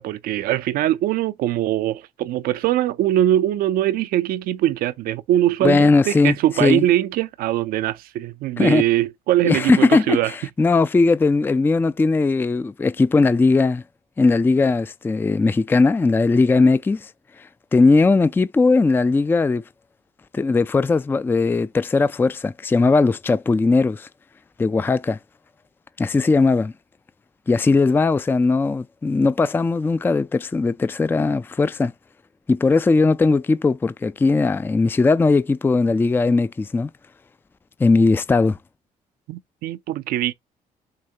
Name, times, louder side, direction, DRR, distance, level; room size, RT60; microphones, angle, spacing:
voice 1, 0.0-10.3 39.3-40.3, right 13 dB, 75° right, 0.5 m, -22 dB
voice 2, 5.6-6.9 8.6-8.8 9.4-13.8 14.2-17.1 17.4-19.6 20.3-24.1 24.6-25.2 26.0-26.7 27.5-31.9 32.5-36.9 37.8-38.6, left 3 dB, 15° left, 0.3 m, -18 dB
6.5 x 2.9 x 2.8 m
supercardioid pair, 70°, 15 cm